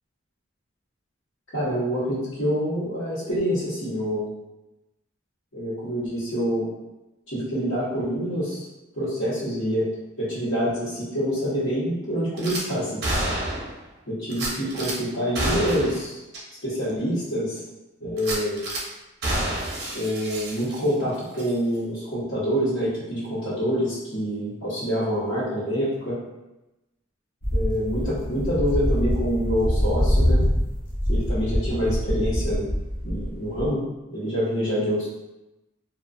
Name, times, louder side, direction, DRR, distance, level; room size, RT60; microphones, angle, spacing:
voice 1, 1.5-4.3 5.5-6.7 7.3-8.7 8.9-9.9 10.2-13.0 14.1-14.5 14.7-16.2 16.6-17.6 18.0-18.6 19.9-26.2 27.5-30.4 31.1-32.7 33.0-33.8 34.1-35.1, equal, 80° left, -15 dB, 1.0 m, -26 dB
Gunshot gunfire / Glass, 12.4-12.6 13.0-13.8 14.3-15.0 15.4-16.0 16.3-16.4 16.9-17.0 18.2-18.8 19.2-21.0 21.3-21.5, right 1 dB, 55° right, 0.5 m, -28 dB
sound 1, 27.4-33.7, equal, 45° left, 0.7 m, -24 dB
2.3 x 2.3 x 2.4 m, 0.99 s
head